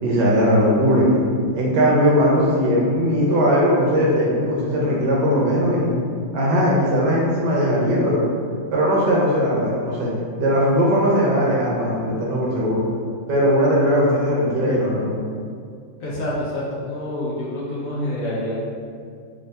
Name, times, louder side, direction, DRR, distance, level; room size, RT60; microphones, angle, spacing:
voice 1, 0.0-1.2 1.5-5.9 6.3-8.2 8.7-10.1 10.4-12.8 13.3-15.1, equal, 70° right, -5 dB, 1.2 m, -19 dB
voice 2, 16.0-18.6, left 1 dB, 65° left, -7 dB, 0.8 m, -27 dB
3.4 x 2.6 x 3.2 m, 2.2 s
omnidirectional pair, 2.1 m